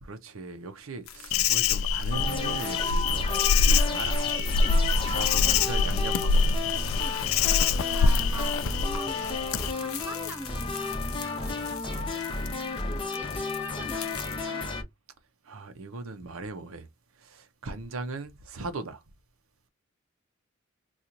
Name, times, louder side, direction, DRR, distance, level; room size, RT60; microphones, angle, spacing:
voice 1, 0.0-4.2 4.7-6.6 15.4-16.9 17.2-19.0, right 3 dB, 75° right, 0.7 m, -39 dB
sound 1, 1.0-14.4, left 8 dB, 90° left, 0.7 m, -45 dB
Insect, 1.3-9.7, left 5 dB, 70° left, 0.3 m, -25 dB
sound 2, 2.1-14.8, left 3 dB, 25° left, 0.8 m, -33 dB
voice 2, 3.7-4.0 4.6-5.6 6.9-7.2 7.7-12.4 12.7-14.6, right 1 dB, 10° right, 0.8 m, -43 dB
2.9 x 2.4 x 3.8 m
head